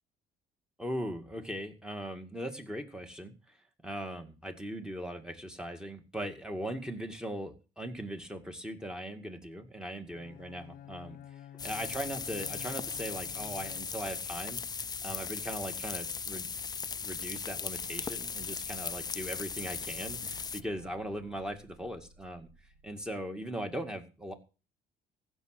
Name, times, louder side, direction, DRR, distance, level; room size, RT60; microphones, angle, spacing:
voice 1, 0.8-3.6 3.8-14.6 15.0-16.5 17.0-22.5 22.8-24.3, equal, 5° right, 6 dB, 2.2 m, -39 dB
Bowed string instrument, 10.1-14.3, left 10 dB, 55° left, 0.8 m, -50 dB
sound 1, 11.6-20.6, left 5 dB, 25° left, 0.6 m, -38 dB
sound 2, 17.8-23.8, right 2 dB, 55° right, 2.8 m, -57 dB
15.5 x 6.4 x 6.6 m, 0.33 s
cardioid pair, 110°, 17 cm